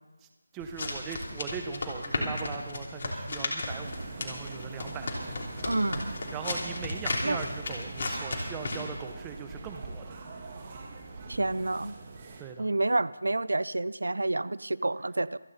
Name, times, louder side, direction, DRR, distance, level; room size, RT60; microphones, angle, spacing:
voice 1, 0.5-5.6 6.3-10.1 12.4-12.7, right 7 dB, 10° right, 5 dB, 0.9 m, -40 dB
sound 1, 0.6-8.9, left 2 dB, 45° left, 3.0 m, -34 dB
sound 2, 3.7-12.4, right 3 dB, 30° right, 1.8 m, -43 dB
voice 2, 5.6-6.1 7.2-7.4 11.3-12.0 12.6-15.4, right 2 dB, 85° right, 19 dB, 0.4 m, -29 dB
26.0 x 9.8 x 4.2 m, 1.2 s
figure-of-eight pair, 170°, 0 cm